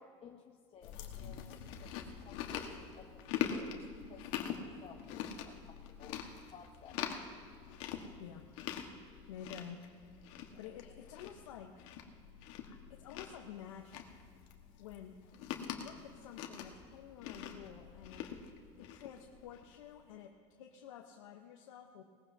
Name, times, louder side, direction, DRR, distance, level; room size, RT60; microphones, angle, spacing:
voice 1, 0.0-2.7 2.9-6.2 6.5-7.0 10.5-11.1, left 7 dB, 35° left, 2 dB, 0.9 m, -57 dB
Chewing mastication, 0.8-19.8, left 8 dB, 70° left, 1.4 m, -44 dB
voice 2, 8.2-8.5 9.3-9.8 10.6-11.9 12.6-14.1 14.8-15.2 15.5-18.3 18.8-22.0, left 9 dB, 90° left, 2 dB, 0.9 m, -50 dB
19.0 x 15.0 x 2.8 m, 2.2 s
supercardioid pair, 110°, 16 cm